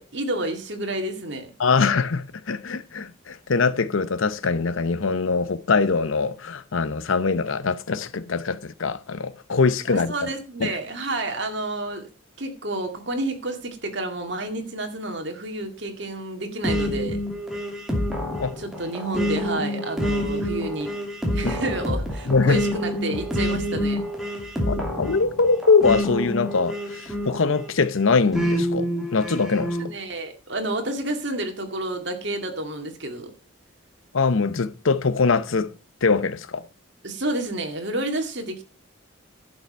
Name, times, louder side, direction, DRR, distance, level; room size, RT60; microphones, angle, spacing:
voice 1, 0.0-1.5 9.9-12.1 12.4-17.2 18.6-20.9 21.3-24.0 29.8-33.3 37.0-38.6, right 2 dB, 55° right, 2.2 m, -30 dB
voice 2, 1.6-10.1 10.6-10.8 18.4-18.5 21.4-21.5 22.3-22.6 24.6-29.8 34.1-35.7 36.0-36.6, left 4 dB, 75° left, 0.7 m, -22 dB
sound 1, 16.6-27.7 28.3-29.9, equal, ahead, 2.6 m, -27 dB
11.5 x 7.0 x 5.4 m
head